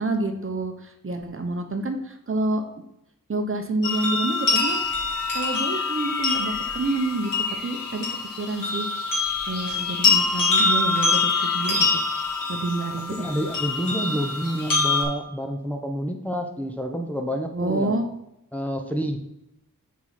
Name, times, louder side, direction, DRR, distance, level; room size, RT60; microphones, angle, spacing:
voice 1, 0.0-2.6 3.3-4.8 5.3-7.3 7.6-8.0 8.4-8.9 9.5-12.0 12.5-13.5 17.5-18.0, right 2 dB, 40° right, 5 dB, 0.9 m, -28 dB
sound 1, 3.8-15.0, left 4 dB, 70° left, 2.4 m, -25 dB
voice 2, 13.1-18.0 18.5-19.2, equal, 5° left, 2 dB, 0.8 m, -28 dB
6.0 x 4.7 x 5.8 m, 0.83 s
wide cardioid pair, 75°, 34 cm